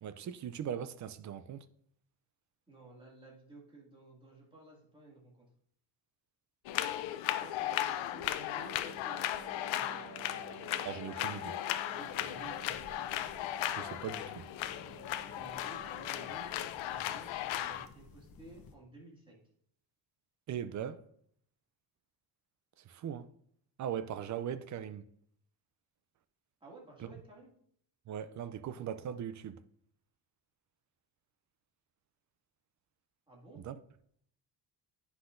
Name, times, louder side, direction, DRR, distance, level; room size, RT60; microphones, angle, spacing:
voice 1, 0.0-1.6 10.8-11.5 13.7-14.4 20.5-21.0 22.8-23.3 23.8-25.0 27.0-27.1 28.1-29.6 33.6-33.7, right 9 dB, 40° right, 0.4 m, -39 dB
voice 2, 2.7-5.5 7.4-9.2 9.6-10.6 11.1-11.2 11.9-12.9 15.4-19.4 26.6-27.5 33.3-33.6, right 2 dB, 10° right, 2.1 m, -54 dB
sound 1, 6.7-17.9, left 12 dB, 75° left, 0.6 m, -36 dB
Wind instrument woodwind instrument, 8.5-16.7, right 4 dB, 85° right, 1.8 m, -53 dB
sound 2, 12.0-18.8, left 4 dB, 50° left, 0.9 m, -56 dB
9.8 x 5.8 x 2.5 m
cardioid pair, 140°, 46 cm